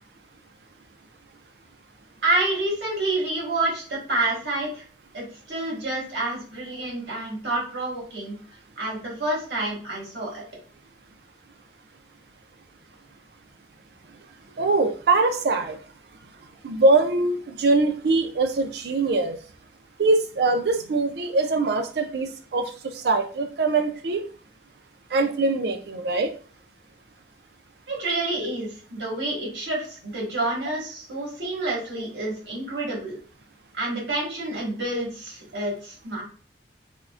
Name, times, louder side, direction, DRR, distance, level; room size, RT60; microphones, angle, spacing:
voice 1, 2.2-4.8 5.1-8.4 8.8-10.4 27.9-33.1 33.7-36.2, right 2 dB, 80° right, -3 dB, 1.4 m, -28 dB
voice 2, 14.6-15.8 16.6-19.4 20.0-24.3 25.1-26.3, right 3 dB, 65° right, 7 dB, 0.4 m, -22 dB
3.6 x 2.1 x 2.3 m, 0.41 s
head